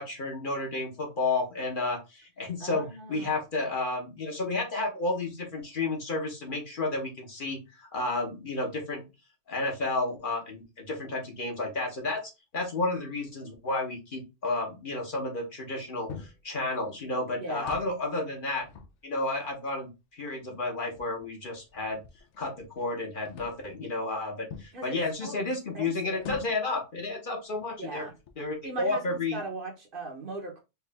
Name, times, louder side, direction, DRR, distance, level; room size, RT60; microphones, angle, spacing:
voice 1, 0.0-9.0 9.5-12.2 12.5-18.6 19.0-22.0 22.4-28.1 28.4-29.4, left 2 dB, 45° left, 1.1 m, -32 dB
voice 2, 2.6-3.4 17.4-17.8 24.7-25.4 25.7-26.3 27.8-28.1 28.6-30.6, right 2 dB, 50° right, 1.0 m, -39 dB
sound 1, 16.1-16.5 17.5-18.0 18.5-19.5 20.2-20.3 20.9-22.9 23.2-23.7 24.5-24.8 26.2-26.8 27.5-27.7 28.1-28.7, left 7 dB, 75° left, 1.0 m, -45 dB
4.7 x 2.5 x 3.4 m
omnidirectional pair, 1.2 m